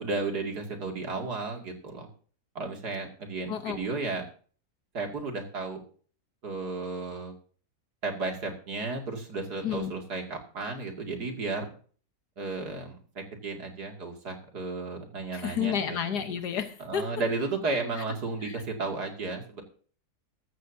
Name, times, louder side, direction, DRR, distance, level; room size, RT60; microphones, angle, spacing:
voice 1, 0.0-2.1 2.5-4.2 4.9-5.8 6.4-7.3 8.0-11.6 12.4-15.7 16.8-19.6, right 3 dB, 75° right, 2 dB, 3.0 m, -33 dB
voice 2, 15.3-17.0 18.4-18.5, left 8 dB, 80° left, 9 dB, 1.8 m, -31 dB
14.5 x 14.0 x 2.8 m, 0.42 s
omnidirectional pair, 1.7 m